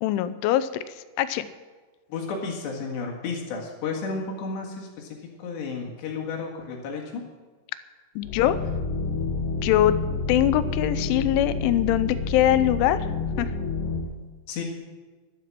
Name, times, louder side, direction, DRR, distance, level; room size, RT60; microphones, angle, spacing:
voice 1, 0.0-0.7 1.2-1.5 8.2-8.6 9.6-10.0 10.3-13.0 13.4-13.5, left 12 dB, 90° left, 13 dB, 3.1 m, -22 dB
voice 2, 2.1-7.2 14.5-14.6, left 4 dB, 70° left, -1 dB, 3.9 m, -32 dB
sound 1, 8.2-14.0, left 3 dB, 55° left, 2.8 m, -29 dB
12.0 x 11.0 x 7.5 m, 1.3 s
omnidirectional pair, 5.4 m